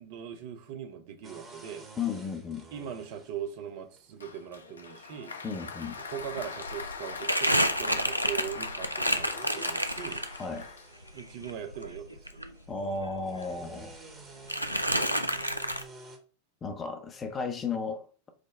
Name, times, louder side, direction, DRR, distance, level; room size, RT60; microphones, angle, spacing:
voice 1, 0.0-1.9 2.7-5.3 6.0-10.2 11.1-12.2, right 8 dB, 50° right, 0.6 m, -40 dB
sound 1, 1.2-16.2, right 2 dB, 20° right, 1.0 m, -52 dB
voice 2, 2.0-2.6 5.4-6.0 10.4-10.7 12.7-14.0 16.6-18.0, left 5 dB, 20° left, 0.6 m, -34 dB
Applause, 4.2-11.3, left 4 dB, 70° left, 0.4 m, -41 dB
Crumpling crinkling, 5.8-5.9 6.2-10.6 11.0-13.2 13.4-14.2 14.5-15.8, equal, 90° right, 0.3 m, -30 dB
5.0 x 2.0 x 3.5 m
figure-of-eight pair, 90°, 0 cm